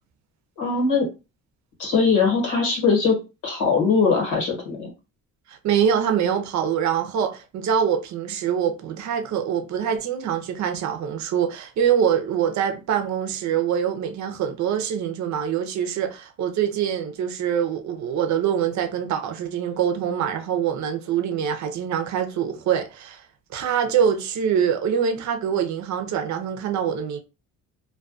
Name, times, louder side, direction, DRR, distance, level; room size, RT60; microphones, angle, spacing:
voice 1, 0.6-1.1 1.8-3.2 3.4-4.9, left 5 dB, 85° left, 1.1 m, -21 dB
voice 2, 5.5-23.2 23.5-27.2, right 8 dB, 70° right, 0.6 m, -24 dB
2.3 x 2.2 x 2.4 m
cardioid pair, 90°, 30 cm